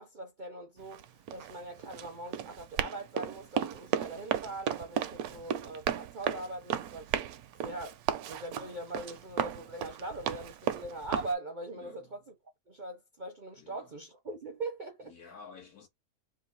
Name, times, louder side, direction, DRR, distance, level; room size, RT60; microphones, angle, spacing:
voice 1, 0.0-7.1 7.6-8.0 8.3-12.3 12.7-15.1, right 2 dB, 45° right, 0.6 m, -41 dB
Run, 0.8-11.3, right 10 dB, 75° right, 1.0 m, -35 dB
voice 2, 11.7-12.2 13.5-13.9 15.0-15.9, left 5 dB, 75° left, 2.1 m, -52 dB
3.9 x 2.2 x 3.8 m
omnidirectional pair, 1.6 m